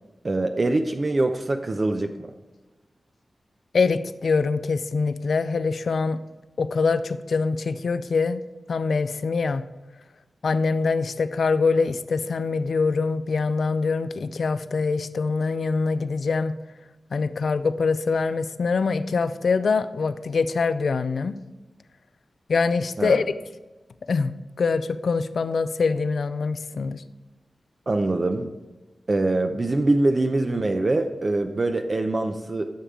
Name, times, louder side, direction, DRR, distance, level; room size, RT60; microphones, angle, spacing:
voice 1, 0.2-2.3 23.0-23.2 27.9-28.5 29.1-32.7, right 2 dB, 40° right, 5 dB, 0.6 m, -23 dB
voice 2, 3.7-6.2 6.6-8.4 8.7-9.6 10.4-16.6 17.1-21.4 22.5-23.2 24.1-27.0, left 4 dB, 80° left, 12 dB, 0.4 m, -24 dB
10.0 x 7.1 x 3.7 m, 1.1 s
wide cardioid pair, 110°, 0 cm